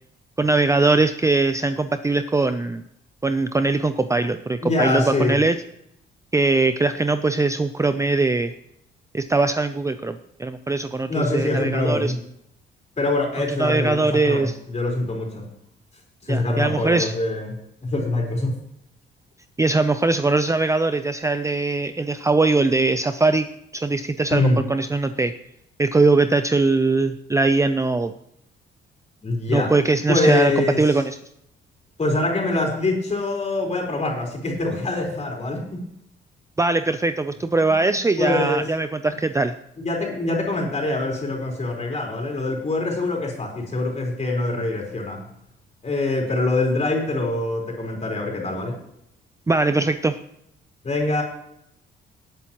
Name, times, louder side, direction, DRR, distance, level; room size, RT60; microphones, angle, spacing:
voice 1, 0.4-2.8 3.2-5.6 6.3-8.5 9.1-12.1 13.6-14.5 16.3-17.1 19.6-23.5 23.7-25.3 25.8-28.1 29.5-31.2 36.6-39.5 49.5-50.1, right 3 dB, 15° right, 10 dB, 0.5 m, -21 dB
voice 2, 4.6-5.4 11.1-12.2 13.0-15.4 16.2-17.5 17.8-18.6 24.3-24.6 29.2-29.7 30.1-31.0 32.0-35.8 37.5-38.7 39.8-45.2 45.8-48.7 50.8-51.2, left 2 dB, 35° left, 0 dB, 4.3 m, -24 dB
18.5 x 8.2 x 3.0 m, 0.77 s
cardioid pair, 90°, 20 cm